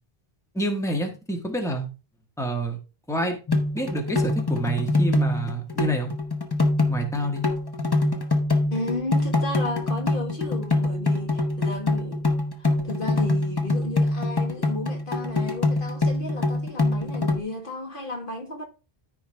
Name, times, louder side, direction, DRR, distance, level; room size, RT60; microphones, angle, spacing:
voice 1, 0.5-1.9 2.4-2.8 3.1-3.4 3.7-6.1 6.9-7.5, right 1 dB, 5° left, 1.6 m, -28 dB
sound 1, 3.5-17.4, left 2 dB, 25° left, 0.9 m, -24 dB
voice 2, 8.7-12.3 12.6-18.7, left 2 dB, 55° left, 1.7 m, -33 dB
13.5 x 4.7 x 3.4 m
omnidirectional pair, 1.1 m